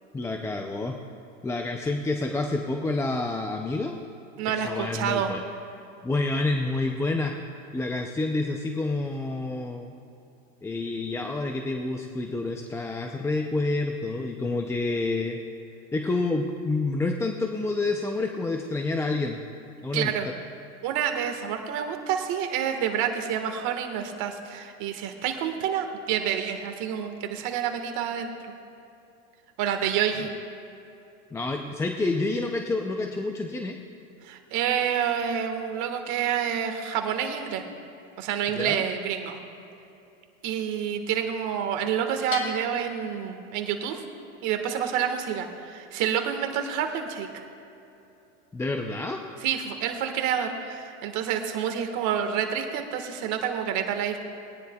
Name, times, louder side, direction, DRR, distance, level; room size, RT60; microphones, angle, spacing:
voice 1, 0.1-1.0 1.4-4.0 4.5-5.4 6.0-7.3 7.7-9.9 10.6-15.4 15.9-19.4 19.8-20.1 31.3-33.8 38.5-38.8 48.5-49.2, left 2 dB, 5° left, 3 dB, 0.4 m, -28 dB
voice 2, 4.4-5.3 19.9-20.3 20.8-28.3 29.6-30.3 34.2-37.6 38.2-39.4 40.4-44.0 44.4-47.4 49.4-54.2, right 8 dB, 45° right, 5 dB, 1.6 m, -28 dB
Bell, 42.3-44.0, left 4 dB, 35° left, 2.2 m, -38 dB
21.0 x 10.0 x 2.3 m, 2.8 s
hypercardioid pair, 110°, 40 cm